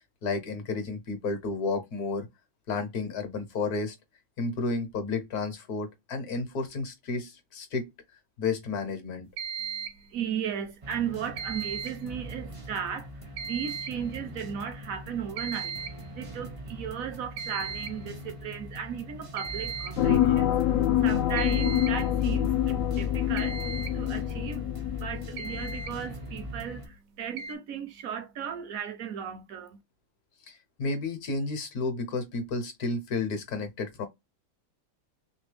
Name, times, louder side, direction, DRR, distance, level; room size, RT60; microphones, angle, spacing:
voice 1, 0.2-2.3 2.7-3.9 4.4-7.9 8.4-9.3 30.5-34.1, left 3 dB, 55° left, 1.3 m, -32 dB
sound 1, 9.4-10.1 11.4-12.1 13.4-14.1 15.4-16.1 17.4-18.0 19.4-20.1 21.4-22.1 23.4-24.0 25.0-25.1 25.4-25.9 27.4-27.6, right 6 dB, 90° right, 1.5 m, -37 dB
voice 2, 10.1-15.7 16.1-29.8, right 8 dB, 70° right, 0.8 m, -36 dB
sound 2, 10.8-26.9, equal, 35° right, 0.5 m, -43 dB
sound 3, 20.0-26.0 26.4-26.5, left 11 dB, 75° left, 0.7 m, -26 dB
3.5 x 3.2 x 3.3 m
omnidirectional pair, 2.1 m